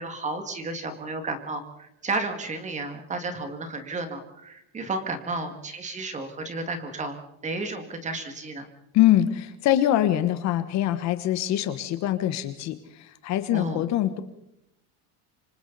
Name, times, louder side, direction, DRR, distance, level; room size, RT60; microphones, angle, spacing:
voice 1, 0.0-8.7 13.5-13.9, right 2 dB, 15° right, 7 dB, 2.1 m, -32 dB
voice 2, 8.9-14.2, left 12 dB, 40° left, 11 dB, 1.2 m, -24 dB
27.0 x 26.0 x 4.1 m, 0.82 s
cardioid pair, 180°, 42 cm